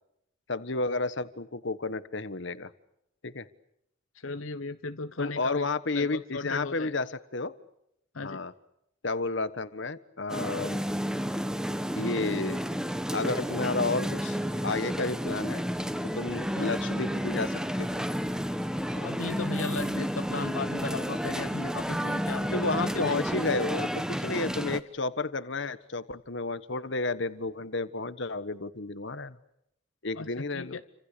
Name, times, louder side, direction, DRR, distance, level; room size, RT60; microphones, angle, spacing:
voice 1, 0.5-2.7 3.2-3.5 5.2-7.5 8.2-8.5 9.0-10.8 11.9-12.6 13.1-15.6 16.1-18.0 22.3-29.4 30.0-30.8, left 3 dB, 60° left, 14 dB, 1.4 m, -31 dB
voice 2, 4.1-5.6 5.9-6.9 8.1-8.4 16.5-16.7 18.9-22.5 22.8-23.2 30.1-30.8, left 3 dB, 85° left, 10 dB, 1.0 m, -36 dB
sound 1, 10.3-24.8, equal, 5° right, 1.2 m, -31 dB
sound 2, 15.3-23.4, right 1 dB, 35° right, 6.6 m, -57 dB
29.5 x 26.0 x 6.8 m, 0.79 s
head